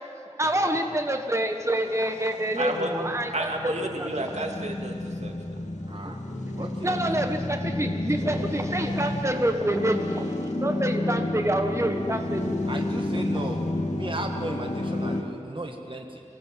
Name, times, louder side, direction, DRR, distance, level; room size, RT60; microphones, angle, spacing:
voice 1, 0.4-3.5 4.0-4.1 6.0-6.1 6.8-10.3 10.6-12.6, right 1 dB, 25° right, 4 dB, 1.5 m, -27 dB
sound 1, 1.9-15.2, left 1 dB, 85° left, 2.1 m, -31 dB
voice 2, 2.6-2.9 3.3-5.4, right 2 dB, 75° right, 2 dB, 2.4 m, -30 dB
voice 3, 5.9-6.2 6.5-7.0 12.7-13.6 13.9-16.2, right 2 dB, 45° right, 3 dB, 1.7 m, -35 dB
24.5 x 18.0 x 7.6 m, 2.3 s
wide cardioid pair, 50°, 12 cm